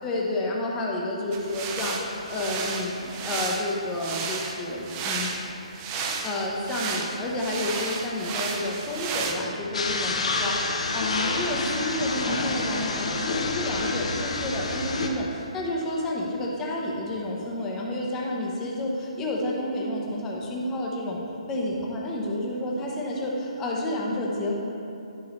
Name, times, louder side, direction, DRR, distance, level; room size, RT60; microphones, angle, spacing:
voice 1, 0.0-2.0 2.3-5.3 6.2-21.2 21.5-24.5, left 1 dB, 10° left, -3 dB, 0.8 m, -30 dB
sound 1, 1.3-9.3, right 4 dB, 20° right, 0.4 m, -33 dB
sound 2, 9.7-15.1, left 3 dB, 65° left, 0.8 m, -28 dB
9.6 x 5.5 x 3.2 m, 2.8 s
hypercardioid pair, 165°, 4 cm